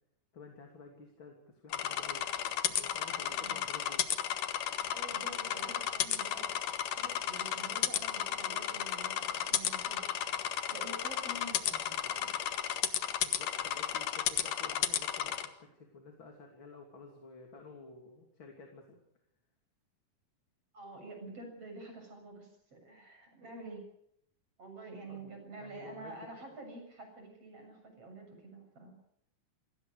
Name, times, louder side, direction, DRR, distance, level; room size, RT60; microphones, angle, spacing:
voice 1, 0.3-2.3 2.7-4.2 13.2-19.0 25.1-26.2, left 3 dB, 40° left, 2 dB, 3.5 m, -52 dB
sound 1, 1.7-15.5, left 10 dB, 75° left, 2.8 m, -34 dB
voice 2, 3.1-3.6 4.9-6.6 6.9-10.4 10.7-12.3 20.7-23.9 24.6-29.0, right 2 dB, 45° right, 5 dB, 8.2 m, -48 dB
28.5 x 19.0 x 6.5 m, 0.74 s
omnidirectional pair, 3.7 m